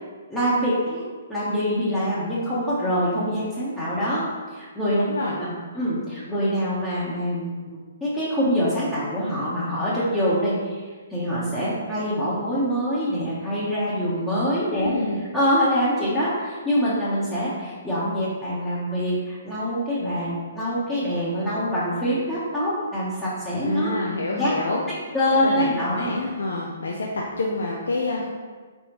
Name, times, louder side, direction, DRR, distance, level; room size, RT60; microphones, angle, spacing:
voice 1, 0.3-4.2 4.5-5.0 5.4-23.9 24.4-24.6 24.9-26.2, equal, 5° left, -10 dB, 0.9 m, -25 dB
voice 2, 4.9-5.4 14.8-15.2 23.6-24.8 25.4-28.3, left 2 dB, 75° left, -2 dB, 0.5 m, -27 dB
3.9 x 3.4 x 2.9 m, 1.5 s
hypercardioid pair, 130°, 0 cm